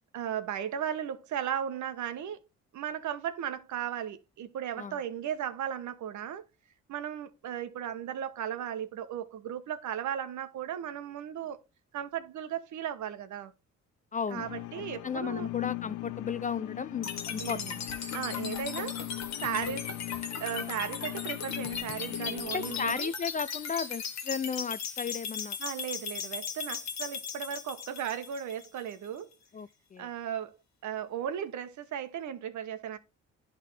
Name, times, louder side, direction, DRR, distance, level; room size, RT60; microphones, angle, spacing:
voice 1, 0.1-2.4 2.7-6.4 6.9-11.6 11.9-13.5 14.3-15.5 17.4-17.7 18.1-19.0 19.4-19.9 20.4-23.1 25.6-29.3 30.0-30.6 30.8-33.0, right 9 dB, 75° right, 1.1 m, -36 dB
voice 2, 14.1-14.5 15.0-17.8 22.5-25.6 29.5-30.1, left 6 dB, 25° left, 0.4 m, -35 dB
sound 1, 14.3-22.9, left 18 dB, 90° left, 0.5 m, -39 dB
sound 2, 17.0-29.1, left 6 dB, 60° left, 1.5 m, -38 dB
11.0 x 3.7 x 3.2 m
cardioid pair, 90°, 30 cm